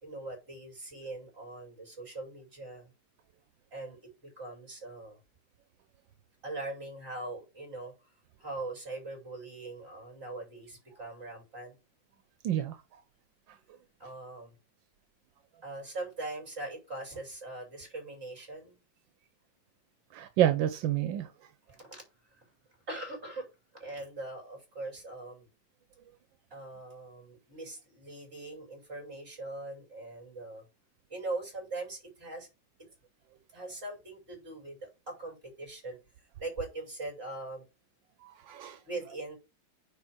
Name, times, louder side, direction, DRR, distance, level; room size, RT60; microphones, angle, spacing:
voice 1, 0.0-2.9 3.7-4.0 4.4-5.2 6.4-8.1 8.4-11.8 14.0-14.5 15.6-18.8 21.7-22.0 22.3-22.4 22.9-23.5 23.7-25.5 26.5-30.6 31.1-32.5 33.5-36.0 36.4-37.6 38.9-39.4, right 2 dB, 30° right, 5.4 m, -41 dB
voice 2, 12.4-12.8 20.1-21.3 38.2-38.8, right 11 dB, 85° right, 1.5 m, -28 dB
9.6 x 3.5 x 6.1 m
omnidirectional pair, 2.0 m